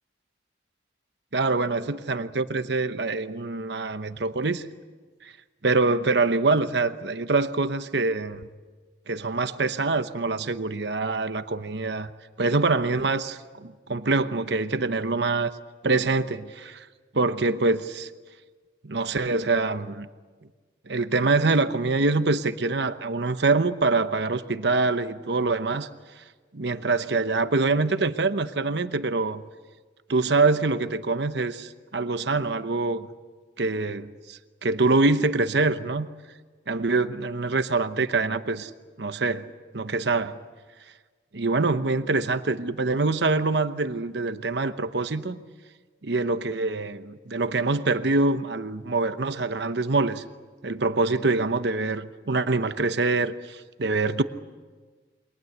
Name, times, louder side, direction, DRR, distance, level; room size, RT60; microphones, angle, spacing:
voice 1, 1.3-4.7 5.2-5.3 5.6-8.5 9.1-12.1 12.4-15.5 15.8-16.9 17.1-18.1 18.8-20.1 20.9-25.9 26.5-29.4 30.1-33.1 33.6-36.1 36.7-38.7 39.0-39.5 39.7-40.4 41.3-45.4 46.0-50.2 50.6-54.2, right 3 dB, 65° right, 10 dB, 1.0 m, -25 dB
28.5 x 23.0 x 8.0 m, 1.4 s
head